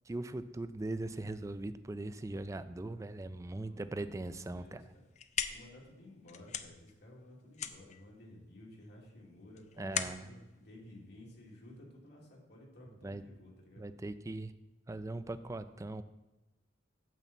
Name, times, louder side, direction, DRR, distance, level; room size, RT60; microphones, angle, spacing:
voice 1, 0.1-4.8 9.8-10.2 13.0-13.2 13.8-14.5 14.9-16.0, right 2 dB, 15° right, 11 dB, 0.3 m, -40 dB
voice 2, 3.4-5.0 5.5-13.9, left 1 dB, 60° left, -3 dB, 2.5 m, -55 dB
sound 1, 4.9-11.8, left 8 dB, 40° left, 0.5 m, -42 dB
9.1 x 4.2 x 7.1 m, 1.0 s
head